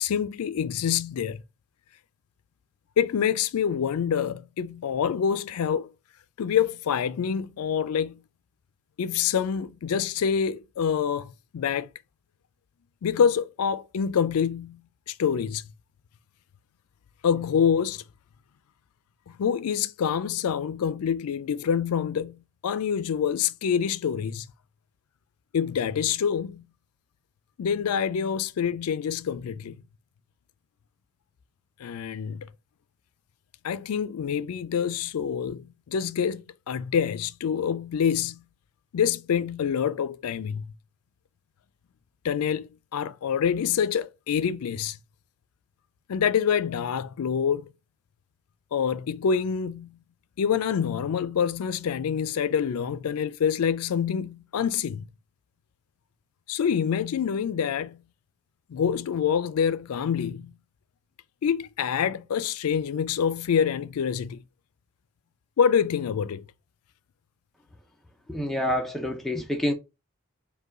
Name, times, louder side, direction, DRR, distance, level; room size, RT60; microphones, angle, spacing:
voice 1, 0.0-1.4 3.0-5.9 6.4-8.2 9.0-11.9 13.0-14.8 15.1-15.6 17.2-18.0 19.3-24.5 25.5-26.7 27.6-29.8 31.8-32.5 33.6-38.4 38.9-40.7 42.2-45.0 46.1-47.7 48.7-50.0 50.4-55.1 56.5-58.0 58.7-60.5 61.4-64.4 65.6-66.4, left 7 dB, 90° left, 0.4 m, -26 dB
voice 2, 68.3-69.7, equal, ahead, 0.5 m, -27 dB
5.3 x 2.3 x 3.7 m
head